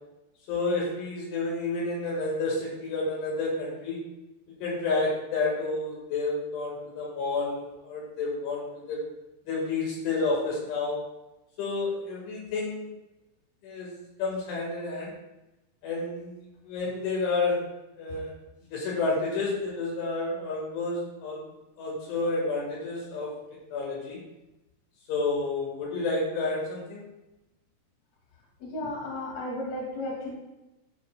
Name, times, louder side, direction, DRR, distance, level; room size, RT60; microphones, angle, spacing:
voice 1, 0.5-4.0 4.6-9.0 9.5-11.0 11.6-12.9 13.6-15.1 15.8-17.6 18.0-18.3 18.7-21.5 21.8-23.3 23.7-24.2 25.1-27.0, left 3 dB, 80° left, -4 dB, 4.1 m, -30 dB
voice 2, 28.6-30.3, left 1 dB, 60° left, -3 dB, 3.9 m, -34 dB
13.0 x 7.5 x 2.3 m, 0.97 s
omnidirectional pair, 5.5 m